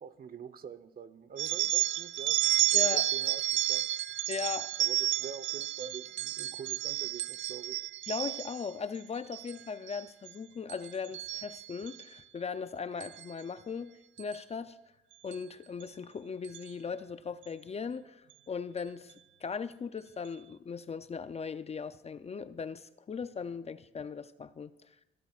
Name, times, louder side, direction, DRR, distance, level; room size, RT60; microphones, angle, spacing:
voice 1, 0.0-3.4 3.7-3.9 4.8-7.8, right 6 dB, 50° right, 0.9 m, -45 dB
sound 1, 1.4-8.7 9.2-9.6 9.9-10.3 10.7-12.0 13.0-13.2 14.2-14.4 15.3-15.4 15.8-15.9 16.4-16.7, right 15 dB, 70° right, 0.5 m, -31 dB
voice 2, 2.7-3.1 4.3-4.7 8.1-14.8 15.2-19.1 19.4-24.7, left 5 dB, 30° left, 0.5 m, -38 dB
23.5 x 12.5 x 2.5 m
cardioid pair, 90°, 20 cm